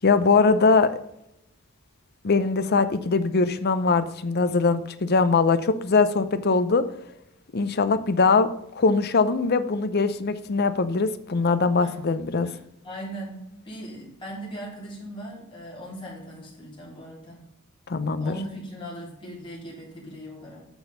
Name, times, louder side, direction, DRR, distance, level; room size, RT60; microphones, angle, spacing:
voice 1, 0.0-1.0 2.2-6.8 7.5-8.5 8.8-12.5 17.9-18.3, left 4 dB, 45° left, 12 dB, 0.6 m, -21 dB
voice 2, 12.4-17.4 18.2-20.6, right 1 dB, 25° left, -5 dB, 3.7 m, -39 dB
7.0 x 6.2 x 5.4 m, 0.82 s
head